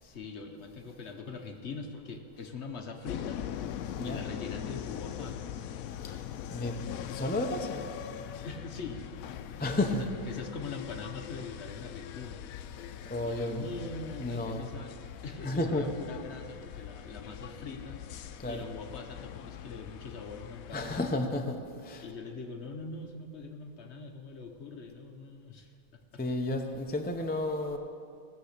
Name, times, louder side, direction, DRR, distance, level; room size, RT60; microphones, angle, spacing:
voice 1, 0.0-3.5 4.0-5.7 8.4-9.0 9.5-10.0 10.3-12.4 13.2-14.9 15.2-18.0 18.4-21.0 22.0-25.7 26.1-26.2, left 4 dB, 50° left, 4 dB, 1.1 m, -42 dB
sound 1, 3.1-21.2, left 10 dB, 75° left, 1.0 m, -42 dB
voice 2, 7.1-7.8 9.6-10.1 13.1-13.7 14.2-14.7 15.4-15.9 16.7-16.8 18.4-18.6 20.7-22.1 26.2-27.8, left 2 dB, 15° left, 4 dB, 0.4 m, -32 dB
17.5 x 7.0 x 6.6 m, 2.5 s
omnidirectional pair, 1.5 m